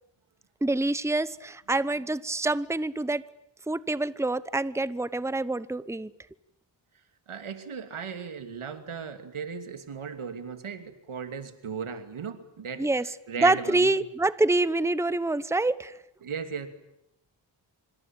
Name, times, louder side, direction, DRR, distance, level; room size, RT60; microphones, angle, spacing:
voice 1, 0.6-3.2 3.7-6.1 12.8-13.1 13.4-15.9, right 2 dB, 5° right, 16 dB, 1.0 m, -26 dB
voice 2, 7.3-14.0 16.2-16.7, right 6 dB, 90° right, 8 dB, 2.9 m, -37 dB
26.0 x 25.5 x 9.0 m, 0.84 s
cardioid pair, 65°, 48 cm